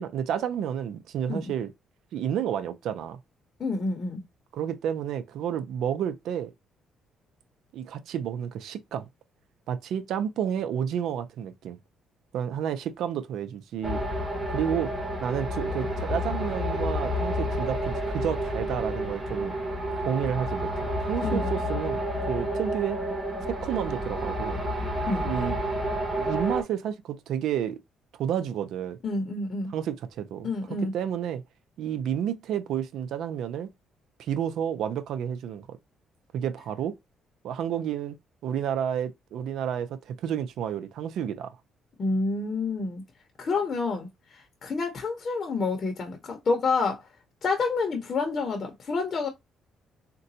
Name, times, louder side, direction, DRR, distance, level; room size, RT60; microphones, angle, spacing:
voice 1, 0.0-1.7 2.1-3.2 4.5-6.5 7.7-9.1 9.7-11.8 12.3-14.0 14.5-14.9 15.2-19.5 20.0-22.0 22.3-23.0 23.5-24.6 25.2-25.6 26.1-27.8 28.2-29.0 29.7-30.5 30.9-31.4 31.8-33.7 34.3-35.8 36.3-37.0 37.4-38.2 38.4-41.5, right 9 dB, 75° right, 0.5 m, -30 dB
voice 2, 3.6-4.2 21.2-21.5 25.1-25.3 29.0-29.7 30.4-30.9 42.0-43.0 43.4-47.1 47.4-49.3, left 3 dB, 40° left, 0.7 m, -28 dB
sound 1, 13.8-26.6, equal, 15° right, 1.4 m, -30 dB
3.8 x 2.2 x 2.7 m
cardioid pair, 105°, 0 cm